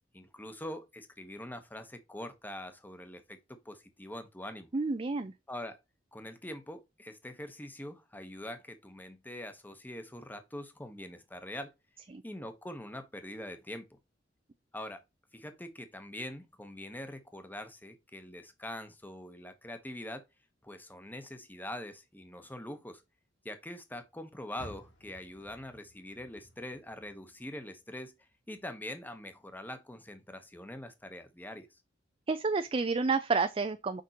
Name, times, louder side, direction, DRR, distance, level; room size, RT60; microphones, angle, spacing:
voice 1, 0.1-4.7 5.5-5.8 6.1-11.7 12.2-14.0 14.7-15.0 15.3-20.2 20.6-23.0 23.4-28.2 28.5-31.7, left 1 dB, 10° left, 1.0 m, -43 dB
voice 2, 4.7-5.3 12.1-12.2 32.3-34.0, right 4 dB, 30° right, 0.5 m, -30 dB
Car, 24.5-27.8 28.2-29.6 30.0-30.1 30.7-30.8, equal, 75° left, 2.4 m, -54 dB
6.6 x 5.3 x 2.9 m
head